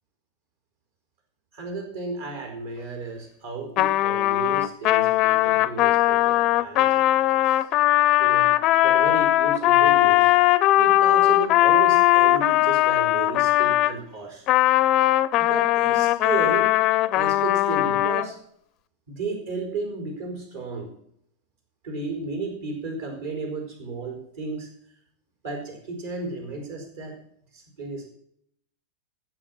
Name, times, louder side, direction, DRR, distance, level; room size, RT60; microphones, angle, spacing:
voice 1, 1.5-7.6 8.2-8.5 8.8-10.3 10.7-14.5 15.4-16.7 17.1-18.4 19.1-20.9 21.8-24.7 25.4-27.2 27.5-28.1, right 4 dB, 60° right, 3 dB, 4.7 m, -33 dB
Trumpet, 3.8-14.0 14.5-18.3, left 15 dB, 35° left, 0.5 m, -19 dB
15.0 x 6.6 x 6.3 m, 0.69 s
figure-of-eight pair, 90°, 0 cm